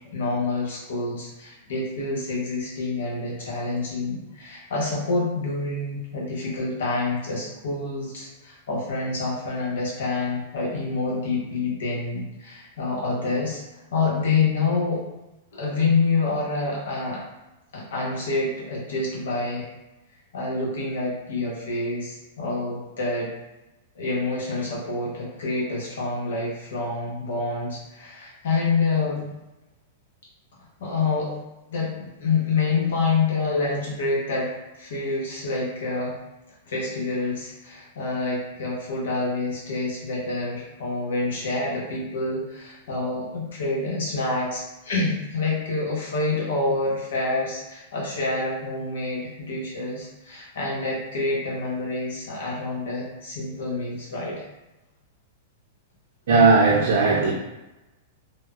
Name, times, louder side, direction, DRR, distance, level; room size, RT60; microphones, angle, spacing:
voice 1, 0.1-13.6 13.9-15.0 15.5-17.2 17.7-19.7 20.3-23.3 23.9-29.3 30.8-31.3 31.7-36.2 36.7-54.5, left 3 dB, 75° left, -4 dB, 1.0 m, -27 dB
voice 2, 56.3-57.3, right 4 dB, 65° right, -5 dB, 0.6 m, -17 dB
3.3 x 2.2 x 2.4 m, 1.0 s
hypercardioid pair, 115°, 0 cm